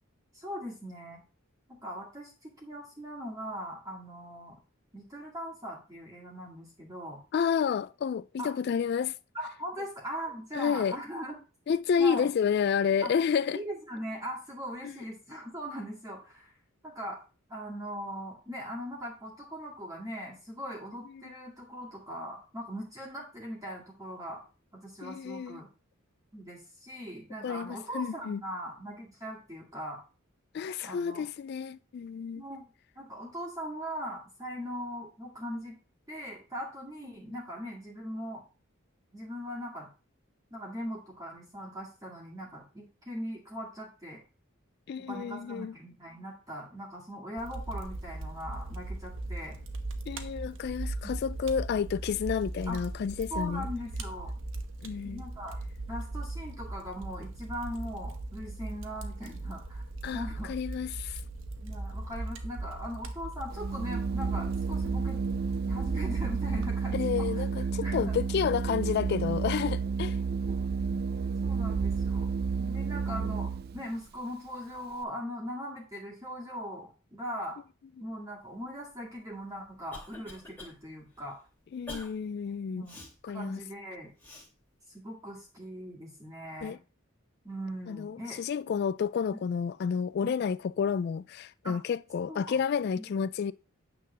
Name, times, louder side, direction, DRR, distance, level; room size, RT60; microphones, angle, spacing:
voice 1, 0.3-1.2 1.7-4.6 4.9-7.2 8.4-8.5 9.3-11.4 12.0-12.3 13.0-13.1 13.5-16.5 16.8-17.2 17.5-24.4 24.7-25.7 26.3-30.0 30.8-31.3 32.3-32.7 33.0-35.8 36.1-38.4 39.1-39.9 40.5-44.2 45.1-49.6 52.7-52.8 53.3-54.3 55.0-55.6 55.9-59.8 60.1-60.5 61.6-65.2 65.7-68.2 70.4-70.6 71.4-77.6 78.0-81.4 82.7-84.1 84.9-86.8 87.4-88.4 90.2-90.4 91.6-91.8 92.3-92.6 92.9-93.1, equal, 15° right, 2.1 m, -40 dB
voice 2, 7.3-9.1 10.5-11.0 11.7-13.6 14.8-14.9 25.0-25.6 27.4-28.4 30.5-32.4 44.9-45.7 50.1-53.7 54.8-55.2 60.0-61.2 66.9-70.2 81.7-82.8 83.2-83.6 86.6-86.8 87.9-93.5, left 7 dB, 50° left, 0.3 m, -30 dB
Fire, 47.4-66.7, right 2 dB, 65° right, 1.1 m, -39 dB
Organ, 63.5-73.8, right 5 dB, 50° right, 0.4 m, -31 dB
Cough, 79.3-80.7 81.1-81.3 81.9-82.1 82.9-83.1 84.2-84.5, left 2 dB, 10° left, 2.5 m, -45 dB
9.3 x 3.8 x 6.6 m
head